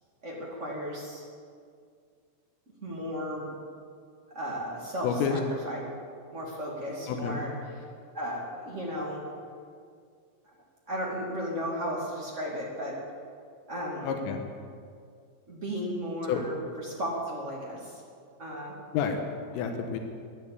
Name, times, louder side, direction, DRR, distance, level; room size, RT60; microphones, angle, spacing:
voice 1, 0.2-1.2 2.8-3.5 4.3-5.4 5.6-5.8 6.3-7.5 8.1-9.2 10.9-13.0 13.7-14.1 15.5-16.6 16.8-18.0 18.4-18.7, equal, 55° right, -4 dB, 0.7 m, -34 dB
voice 2, 5.0-5.4 7.1-7.4 14.0-14.5 16.3-16.4 18.9-20.0, left 7 dB, 90° left, 4 dB, 3.7 m, -29 dB
15.0 x 11.0 x 8.3 m, 2.2 s
omnidirectional pair, 5.8 m